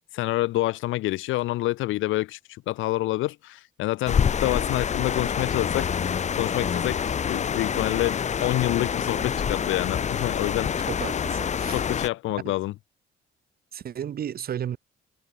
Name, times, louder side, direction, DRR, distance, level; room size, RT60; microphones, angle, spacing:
voice 1, 0.1-5.9 6.4-10.9 11.7-12.7, left 17 dB, 80° left, 0.4 m, -27 dB
sound 1, 4.1-12.1, left 7 dB, 35° left, 0.6 m, -27 dB
voice 2, 10.9-11.8 12.4-12.5 13.7-14.8, right 9 dB, 50° right, 0.7 m, -33 dB
cardioid pair, 90°, 20 cm